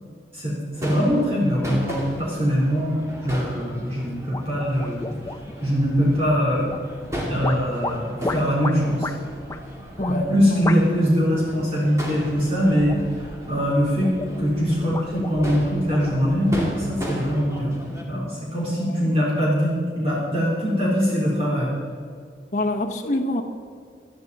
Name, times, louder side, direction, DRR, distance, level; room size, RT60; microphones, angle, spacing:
voice 1, 0.3-5.1 5.6-6.7 7.3-9.1 10.1-14.1 14.4-17.7 18.1-21.7, equal, 35° right, -6 dB, 3.5 m, -22 dB
Crowd / Fireworks, 0.7-18.0, equal, 15° right, 2.3 m, -35 dB
sound 1, 4.3-5.6 6.6-7.1 7.4-9.2 9.5-9.6 10.0-10.2 10.6-11.0 11.3-11.7 12.6-13.2 13.6-14.4 14.8-16.4, left 2 dB, 15° left, 0.6 m, -32 dB
voice 2, 10.0-10.7 18.8-19.0 22.5-23.4, left 1 dB, 40° left, 1 dB, 1.0 m, -26 dB
18.5 x 12.0 x 4.1 m, 2.1 s
head